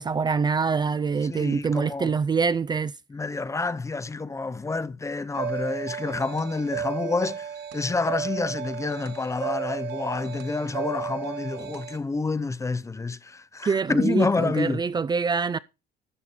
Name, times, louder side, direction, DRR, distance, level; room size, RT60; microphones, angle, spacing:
voice 1, 0.0-2.9 13.6-15.6, right 5 dB, 25° right, 0.5 m, -25 dB
voice 2, 1.2-2.1 3.1-14.8, left 3 dB, 20° left, 0.6 m, -28 dB
sound 1, 5.3-12.0, right 8 dB, 80° right, 1.2 m, -34 dB
12.5 x 7.0 x 4.3 m
cardioid pair, 110°, 17 cm